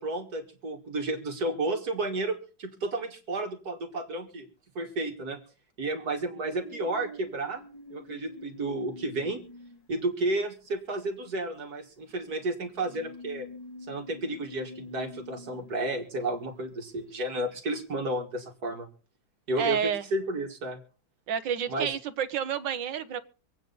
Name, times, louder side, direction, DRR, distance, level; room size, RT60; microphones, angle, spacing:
voice 1, 0.0-4.5 4.8-5.4 5.8-7.6 7.9-9.4 9.9-13.5 13.9-18.9 19.5-20.8 21.7-21.9, right 2 dB, 60° right, 4 dB, 2.3 m, -32 dB
sound 1, 6.4-10.1 11.2-11.3 12.0-16.5 18.2-18.3, left 2 dB, 75° left, 3.2 m, -46 dB
voice 2, 19.6-20.0 21.3-23.2, right 8 dB, 80° right, 12 dB, 1.6 m, -29 dB
25.5 x 9.1 x 4.0 m, 0.37 s
omnidirectional pair, 1.9 m